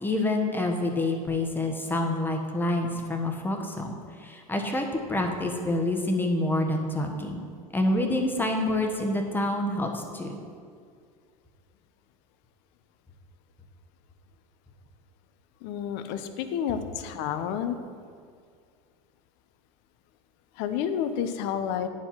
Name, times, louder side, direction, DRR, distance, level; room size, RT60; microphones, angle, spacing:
voice 1, 0.0-3.9 4.2-7.4 7.7-10.4, left 1 dB, 10° left, 3 dB, 1.2 m, -27 dB
voice 2, 15.6-17.8 20.6-21.9, left 8 dB, 55° left, 9 dB, 0.8 m, -30 dB
9.5 x 4.8 x 5.7 m, 2.1 s
hypercardioid pair, 90°, 21 cm